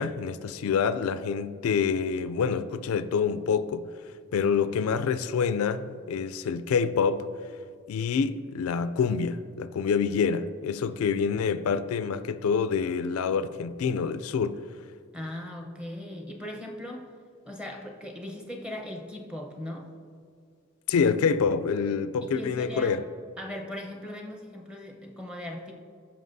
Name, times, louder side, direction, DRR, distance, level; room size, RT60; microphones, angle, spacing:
voice 1, 0.0-3.8 4.3-7.3 7.9-14.6 20.9-23.0, left 6 dB, 85° left, 0.3 m, -27 dB
voice 2, 15.1-17.1 17.4-19.9 22.2-23.0 23.4-25.7, left 1 dB, 5° right, 0.8 m, -38 dB
14.5 x 5.7 x 2.7 m
head